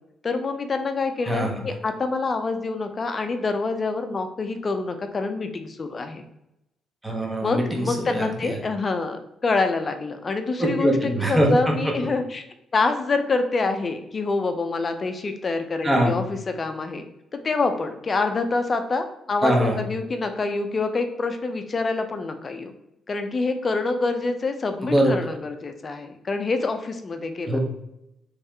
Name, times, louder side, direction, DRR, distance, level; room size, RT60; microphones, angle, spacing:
voice 1, 0.2-6.2 7.4-12.4 12.7-17.0 17.3-22.7 23.1-27.6, left 3 dB, 35° left, 7 dB, 0.4 m, -26 dB
voice 2, 7.0-8.6 10.6-11.7 15.8-16.2 19.4-19.8 24.8-25.2 27.5-27.6, right 1 dB, 10° right, 0 dB, 1.0 m, -22 dB
3.4 x 3.1 x 3.3 m, 0.86 s
cardioid pair, 90°, 0 cm